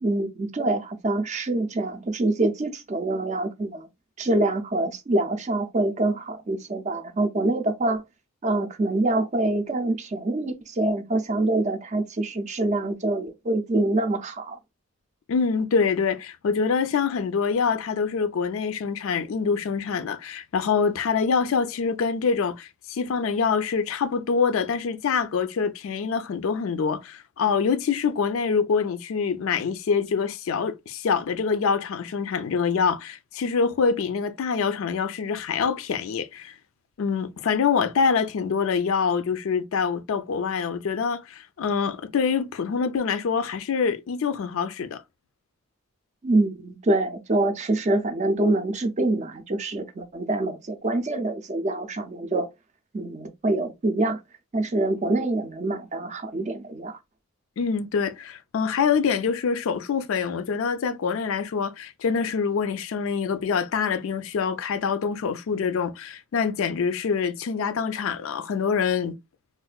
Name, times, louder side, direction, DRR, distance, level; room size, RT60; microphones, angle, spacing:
voice 1, 0.0-3.9 4.2-8.0 8.4-14.6 46.2-52.5 52.9-54.2 54.5-57.0, right 2 dB, 30° right, 0.4 m, -25 dB
voice 2, 15.3-36.6 37.0-45.0 57.6-69.1, left 5 dB, 65° left, 0.4 m, -25 dB
3.6 x 2.4 x 2.2 m
head